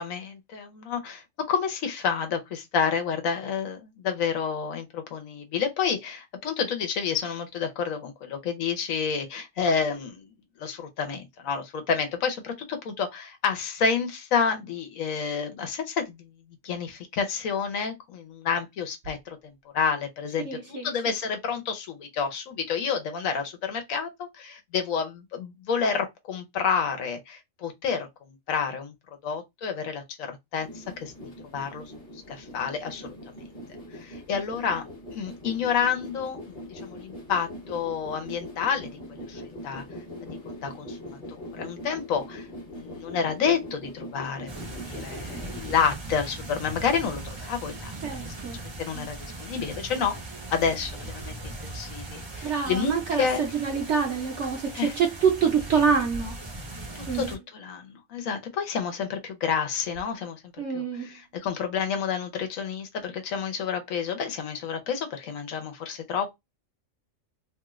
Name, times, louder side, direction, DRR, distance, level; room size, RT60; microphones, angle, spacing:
voice 1, 0.0-10.3 10.6-16.3 16.6-28.9 29.2-30.0 30.3-31.1 31.5-31.9 32.3-33.2 33.9-34.8 35.1-38.9 39.3-39.8 40.5-47.9 48.2-48.3 48.8-50.1 50.5-53.4 54.7-54.9 56.9-60.4 60.7-66.3, left 6 dB, 80° left, 1.2 m, -29 dB
voice 2, 20.5-20.9 48.0-48.6 48.9-49.1 52.4-56.3 57.1-57.3 60.6-61.1, right 6 dB, 65° right, 1.0 m, -26 dB
sound 1, 30.6-45.7, left 1 dB, 40° left, 1.2 m, -42 dB
sound 2, 44.5-57.4, right 2 dB, 30° right, 0.5 m, -39 dB
2.9 x 2.4 x 3.0 m
omnidirectional pair, 1.4 m